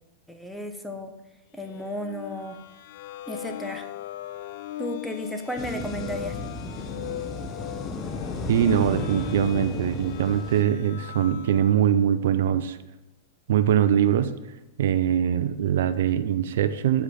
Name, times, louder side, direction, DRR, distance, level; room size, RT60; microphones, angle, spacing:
voice 1, 0.3-1.1 1.5-2.6 3.3-3.9 4.8-6.3, equal, ahead, 5 dB, 1.0 m, -33 dB
sound 1, 1.6-11.8, left 12 dB, 60° left, 0.5 m, -40 dB
sound 2, 5.6-10.6, left 3 dB, 25° left, 1.0 m, -34 dB
voice 2, 8.5-12.8 13.5-14.3 14.8-17.0, right 9 dB, 70° right, 10 dB, 0.5 m, -22 dB
8.1 x 4.9 x 5.6 m, 0.93 s
hypercardioid pair, 115°, 0 cm